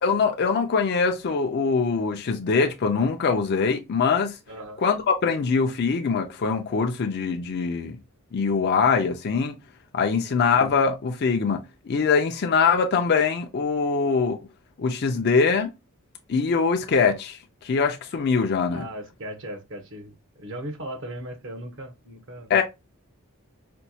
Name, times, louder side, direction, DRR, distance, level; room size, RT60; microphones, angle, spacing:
voice 1, 0.0-4.4 4.8-8.0 8.3-9.5 9.9-14.4 14.8-15.7 16.3-18.9 22.5-22.6, left 5 dB, 50° left, 0.4 m, -23 dB
voice 2, 4.5-4.8 10.1-10.2 18.7-22.5, right 1 dB, 60° right, 0.9 m, -38 dB
4.3 x 2.2 x 2.7 m
head